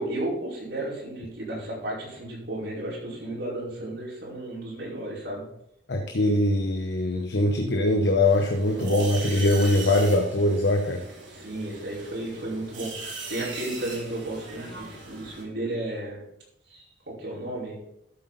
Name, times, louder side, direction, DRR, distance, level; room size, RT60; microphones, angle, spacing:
voice 1, 0.0-5.4 8.7-9.6 11.3-16.2 16.7-17.8, right 1 dB, 70° right, -5 dB, 5.0 m, -33 dB
voice 2, 5.9-11.0, left 1 dB, 70° left, 4 dB, 1.0 m, -22 dB
sound 1, 8.2-15.4, right 3 dB, 90° right, 3.7 m, -40 dB
13.0 x 7.8 x 4.1 m, 0.80 s
head